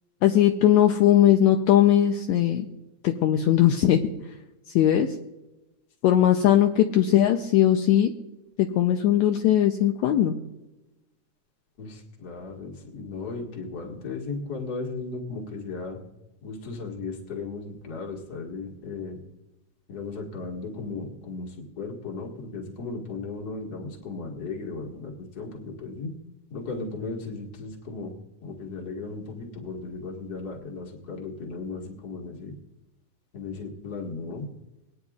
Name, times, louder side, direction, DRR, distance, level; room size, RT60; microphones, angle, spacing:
voice 1, 0.2-2.7 3.0-4.0 4.7-5.1 6.0-8.1 8.6-10.4, left 11 dB, 75° left, 5 dB, 1.8 m, -19 dB
voice 2, 11.8-16.0 16.4-19.2 19.9-26.1 26.5-28.2 28.4-32.6 33.3-34.5, left 3 dB, 35° left, 0 dB, 1.9 m, -36 dB
22.0 x 9.6 x 2.4 m, 1.0 s
omnidirectional pair, 3.5 m